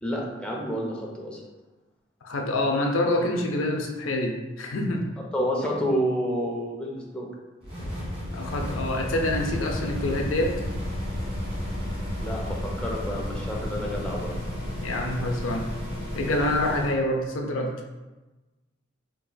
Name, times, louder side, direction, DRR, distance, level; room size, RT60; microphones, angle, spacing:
voice 1, 0.0-1.4 5.3-7.3 12.2-14.3, equal, 5° left, -3 dB, 0.4 m, -29 dB
voice 2, 2.2-5.0 8.3-10.5 14.8-15.7 16.1-17.7, left 1 dB, 75° left, 2 dB, 0.5 m, -26 dB
sound 1, 7.6-17.0, left 1 dB, 30° right, 1.3 m, -32 dB
4.0 x 2.9 x 2.3 m, 1.1 s
head